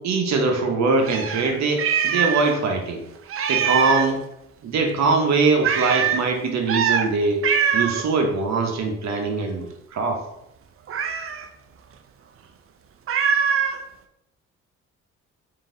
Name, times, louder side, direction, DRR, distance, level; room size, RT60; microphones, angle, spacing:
voice 1, 0.0-3.0 3.5-4.2 4.6-7.4 7.7-10.2, right 3 dB, 65° right, 2 dB, 1.0 m, -22 dB
Meow, 1.0-2.5 2.8-2.9 3.3-4.2 5.6-6.2 6.7-7.1 7.4-8.0 10.9-11.5 13.1-13.8, right 7 dB, 45° right, 0.5 m, -23 dB
3.8 x 2.8 x 3.8 m, 0.83 s
cardioid pair, 90°, 30 cm